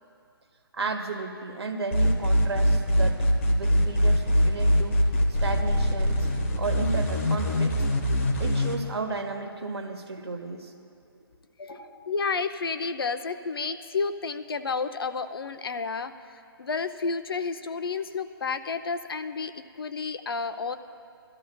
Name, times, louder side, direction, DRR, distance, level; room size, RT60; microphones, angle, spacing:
voice 1, 0.7-5.1 5.4-6.3 6.6-7.9 8.4-10.7 11.7-12.0, right 3 dB, 85° right, 5 dB, 1.5 m, -34 dB
sound 1, 1.9-8.7, equal, 30° left, 1.1 m, -22 dB
voice 2, 11.6-20.8, left 4 dB, 65° left, 9 dB, 0.7 m, -31 dB
23.5 x 13.0 x 2.3 m, 2.5 s
hypercardioid pair, 180°, 13 cm